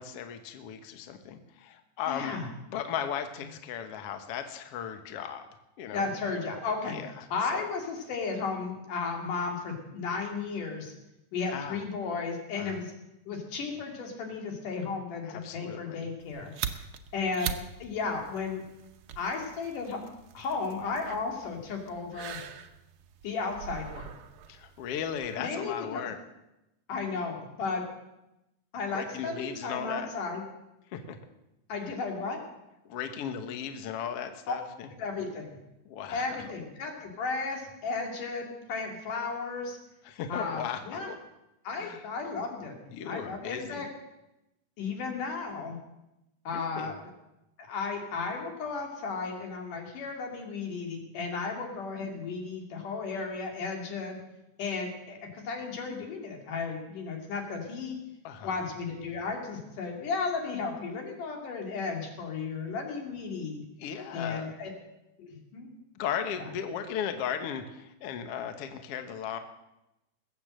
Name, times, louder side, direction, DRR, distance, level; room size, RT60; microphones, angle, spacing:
voice 1, 0.0-2.4 2.7-5.5 5.8-6.0 6.9-7.3 7.5-7.6 11.5-11.8 12.6-12.8 15.2-16.1 24.5-26.2 28.9-30.1 30.9-31.2 32.8-34.9 35.8-36.4 40.0-41.2 41.7-42.0 42.9-43.9 46.5-46.9 58.2-58.6 63.8-64.6 65.9-69.4, left 8 dB, 60° left, 7 dB, 1.8 m, -36 dB
voice 2, 2.1-2.5 5.9-7.0 7.3-10.9 11.3-12.9 13.3-16.5 17.1-17.5 17.8-18.6 19.2-20.0 20.3-22.4 23.2-24.1 25.4-26.1 26.9-27.8 28.7-30.4 31.7-32.4 34.5-34.6 35.0-35.6 36.1-39.8 40.3-41.1 41.6-42.8 43.1-43.9 44.8-45.8 46.5-47.0 47.6-54.2 54.6-58.0 58.4-63.6 64.1-64.7 65.2-65.7 66.4-66.5, left 4 dB, 85° left, 2 dB, 4.1 m, -34 dB
sound 1, 16.2-25.4, right 9 dB, 80° right, 1.2 m, -42 dB
20.0 x 8.6 x 7.6 m, 0.91 s
omnidirectional pair, 3.6 m